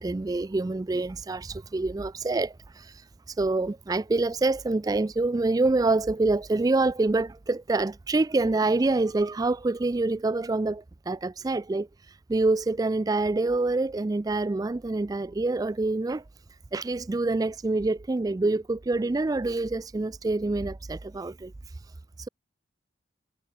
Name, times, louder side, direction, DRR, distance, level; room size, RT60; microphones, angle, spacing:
voice 1, 0.0-16.2 16.7-21.8 22.2-22.3, right 2 dB, 20° right, 0.3 m, -26 dB
head